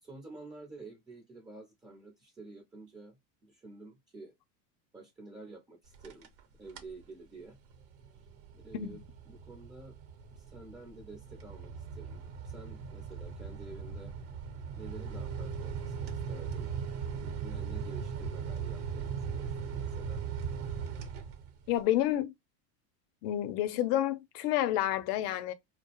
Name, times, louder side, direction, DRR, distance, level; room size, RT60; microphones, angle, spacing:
voice 1, 0.0-4.3 4.9-6.3 6.6-7.6 8.5-10.0 10.3-14.1 14.8-16.7 17.2-20.2, right 3 dB, 10° right, 0.4 m, -50 dB
sound 1, 5.9-6.4 6.7-7.0 7.5-21.8, right 6 dB, 60° right, 0.8 m, -39 dB
voice 2, 21.7-22.3 23.2-25.5, left 13 dB, 65° left, 0.6 m, -29 dB
2.3 x 2.0 x 2.8 m
supercardioid pair, 115°, 50 cm